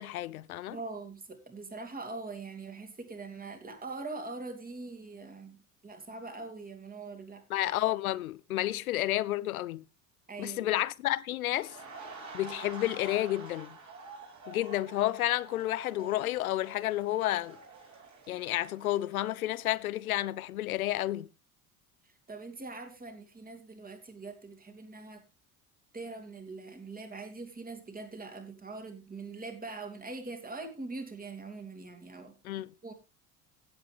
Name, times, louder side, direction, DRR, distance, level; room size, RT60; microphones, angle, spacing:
voice 1, 0.0-0.8 7.5-9.8 10.4-11.8 12.3-13.8 14.5-17.6 18.3-21.3 32.4-32.7, left 15 dB, 80° left, 0.6 m, -31 dB
voice 2, 0.7-7.4 10.3-10.7 22.0-25.2 25.9-32.4 32.8-32.9, right 3 dB, 20° right, 2.8 m, -43 dB
sound 1, 11.5-20.4 20.7-20.9, right 3 dB, 40° right, 4.7 m, -48 dB
16.5 x 8.1 x 3.3 m
figure-of-eight pair, 65°, 43 cm